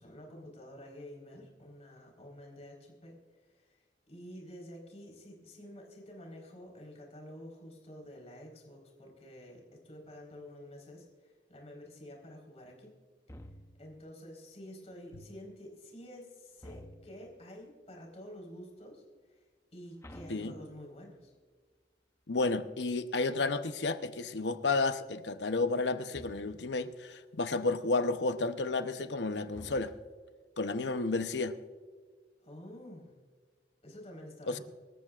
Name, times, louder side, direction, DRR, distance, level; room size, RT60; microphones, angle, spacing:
voice 1, 0.0-3.2 3.5-12.9 13.8-21.3 32.4-33.2 33.8-34.6, equal, 40° left, 4.2 m, -49 dB
sound 1, 13.3-14.0 16.6-17.4 20.0-21.2 26.1-26.8 29.5-30.3, left 1 dB, 15° left, 0.8 m, -51 dB
voice 2, 22.3-29.9 30.6-31.5 34.5-34.6, left 3 dB, 80° left, 0.8 m, -31 dB
25.0 x 13.5 x 2.5 m
head